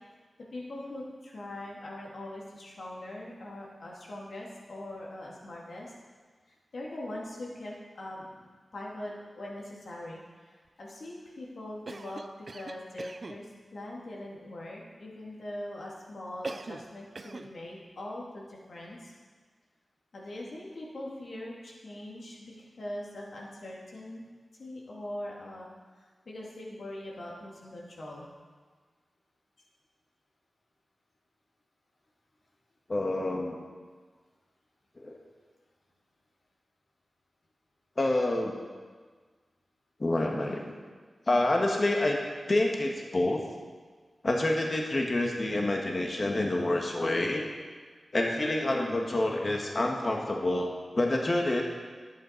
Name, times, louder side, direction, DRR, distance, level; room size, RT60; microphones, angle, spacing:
voice 1, 0.5-5.9 6.5-19.1 20.1-24.2 24.6-25.7 26.0-28.3, left 1 dB, 75° left, -3 dB, 2.4 m, -42 dB
Cough, 11.9-13.4 16.4-16.9 17.2-17.5, right 3 dB, 55° right, 0.5 m, -41 dB
voice 2, 32.9-33.6 35.0-35.2 38.0-38.6 40.0-40.8 41.3-42.2 42.5-43.4 44.2-47.5 48.1-51.6, left 1 dB, 45° left, 0 dB, 1.4 m, -27 dB
11.0 x 8.4 x 4.5 m, 1.5 s
cardioid pair, 55°, 0 cm